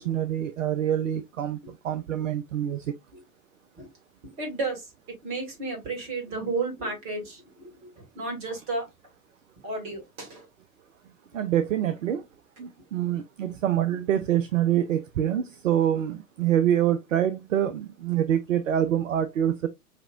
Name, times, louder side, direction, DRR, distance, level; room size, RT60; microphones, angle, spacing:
voice 1, 0.0-2.9 11.3-12.3 12.6-19.7, right 10 dB, 60° right, 0.6 m, -26 dB
voice 2, 4.2-8.9 9.6-10.5, right 3 dB, 30° right, 2.2 m, -33 dB
5.8 x 2.9 x 2.4 m
figure-of-eight pair, 105°, 44 cm